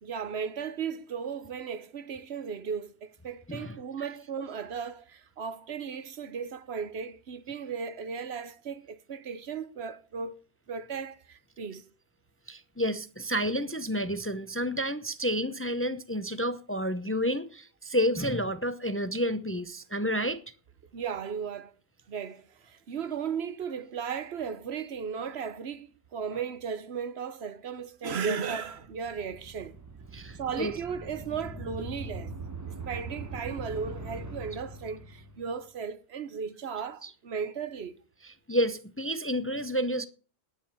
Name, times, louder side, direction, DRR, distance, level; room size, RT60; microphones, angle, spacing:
voice 1, 0.0-10.4 10.7-11.9 20.9-21.8 22.1-29.8 30.1-32.3 32.7-38.0, right 6 dB, 75° right, 1.2 m, -36 dB
voice 2, 12.5-20.4 30.1-30.7 37.0-37.1 38.5-40.1, equal, 15° left, 0.6 m, -30 dB
sound 1, 28.5-35.5, right 2 dB, 15° right, 0.9 m, -41 dB
10.0 x 10.0 x 6.9 m
omnidirectional pair, 1.1 m